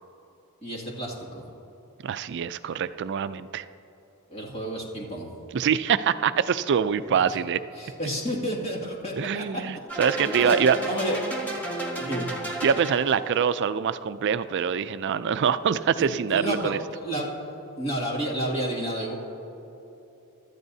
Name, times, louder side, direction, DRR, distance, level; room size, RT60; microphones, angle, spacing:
voice 1, 0.6-1.5 4.3-5.3 7.1-7.2 7.8-9.6 10.2-11.2 11.5-12.3 16.0-16.7 17.0-17.3 17.8-19.1, right 1 dB, 30° left, -2 dB, 2.3 m, -31 dB
voice 2, 2.0-3.6 5.5-7.6 9.2-10.8 12.6-16.8, right 7 dB, 55° right, 13 dB, 0.4 m, -24 dB
sound 1, 9.9-13.4, right 1 dB, 10° left, 1.9 m, -32 dB
24.5 x 13.0 x 2.7 m, 3.0 s
head